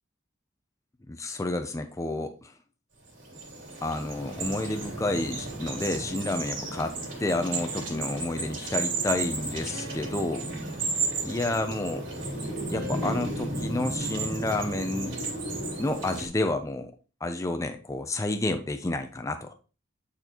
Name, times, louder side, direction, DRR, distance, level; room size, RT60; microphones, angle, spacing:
voice 1, 1.1-2.5 3.8-10.4 11.2-12.0 12.7-15.2 15.8-16.9 17.2-19.5, left 2 dB, 15° left, 6 dB, 0.5 m, -30 dB
sound 1, 3.1-16.3, right 3 dB, 70° right, 2.8 m, -33 dB
sound 2, 7.6-8.6 9.7-11.6 12.7-13.1, left 2 dB, 45° right, 1.9 m, -46 dB
9.0 x 4.2 x 2.9 m, 0.35 s
head